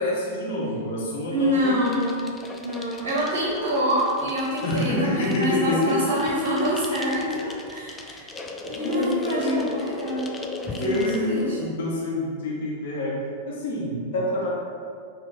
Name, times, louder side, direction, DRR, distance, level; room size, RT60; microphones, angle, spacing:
voice 1, 0.0-1.8 4.6-6.0 8.8-9.7 10.8-13.2 13.5-14.5, left 1 dB, 60° left, -5 dB, 0.7 m, -27 dB
voice 2, 1.3-2.2 2.6-10.4 10.6-11.6, equal, 60° right, -5 dB, 0.7 m, -26 dB
sound 1, 1.4-11.7, left 2 dB, 15° left, 0.3 m, -38 dB
3.8 x 2.2 x 3.7 m, 2.3 s
figure-of-eight pair, 100°, 0 cm